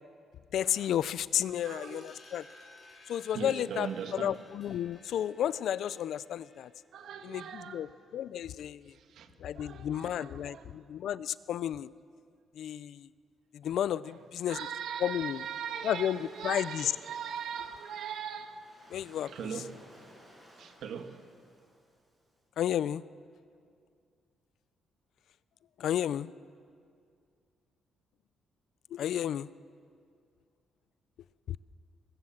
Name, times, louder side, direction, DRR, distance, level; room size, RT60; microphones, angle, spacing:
voice 1, 0.5-2.4 3.1-6.7 7.2-8.9 9.4-11.9 12.5-13.1 13.5-14.6 15.0-15.4 15.8-16.9 18.9-19.3 22.6-23.0 25.8-26.3 28.9-29.5 31.5-31.6, left 10 dB, 65° left, 0.5 m, -32 dB
sound 1, 1.3-6.9, left 2 dB, 30° left, 7.7 m, -57 dB
voice 2, 1.6-2.1 3.3-4.4 6.9-7.9 8.9-10.7 14.0-14.1 14.4-18.7 19.2-19.8 20.6-21.3, right 7 dB, 70° right, 1.7 m, -40 dB
Waves surf, 14.1-22.3, equal, 10° right, 6.5 m, -58 dB
23.0 x 21.0 x 7.4 m
cardioid pair, 155°, 0 cm